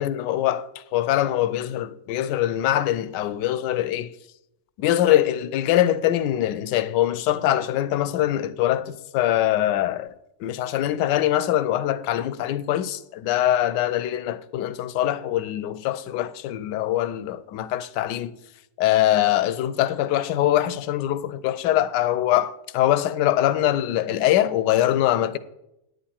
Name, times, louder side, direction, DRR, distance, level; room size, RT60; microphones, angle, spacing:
voice 1, 0.0-4.1 4.8-10.1 10.4-18.4 18.8-25.4, left 13 dB, 80° left, 1.2 m, -23 dB
9.6 x 9.4 x 4.3 m
omnidirectional pair, 1.9 m